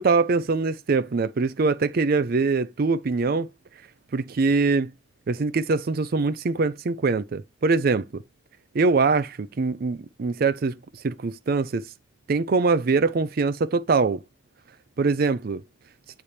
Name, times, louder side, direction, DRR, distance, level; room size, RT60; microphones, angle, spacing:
voice 1, 0.0-3.5 4.1-4.9 5.3-8.2 8.7-10.8 11.0-11.9 12.3-14.2 15.0-15.6, right 4 dB, 45° right, 0.4 m, -23 dB
8.5 x 3.3 x 4.3 m
head